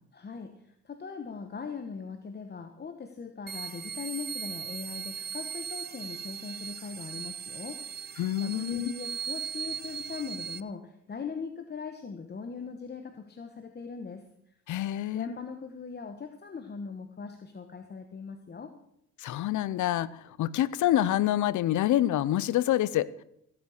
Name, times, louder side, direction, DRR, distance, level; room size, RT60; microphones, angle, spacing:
voice 1, 0.1-14.2 15.1-18.7, left 5 dB, 35° left, 6 dB, 1.2 m, -40 dB
sound 1, 3.5-10.6, right 7 dB, 35° right, 0.7 m, -38 dB
voice 2, 8.2-8.9 14.7-15.3 19.2-23.2, left 13 dB, 75° left, 19 dB, 0.7 m, -27 dB
15.0 x 8.6 x 6.5 m, 0.75 s
cardioid pair, 90°, 30 cm